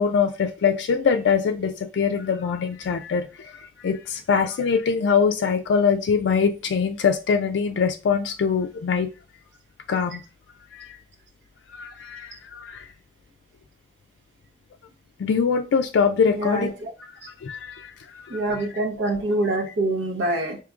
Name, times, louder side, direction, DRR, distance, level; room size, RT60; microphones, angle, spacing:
voice 1, 0.0-9.1 9.9-10.2 10.7-11.0 11.7-12.9 15.2-16.7 17.2-18.4, left 6 dB, 85° left, 0.3 m, -23 dB
voice 2, 16.3-16.9 18.3-20.6, right 2 dB, 80° right, 0.8 m, -25 dB
4.9 x 2.8 x 2.4 m
head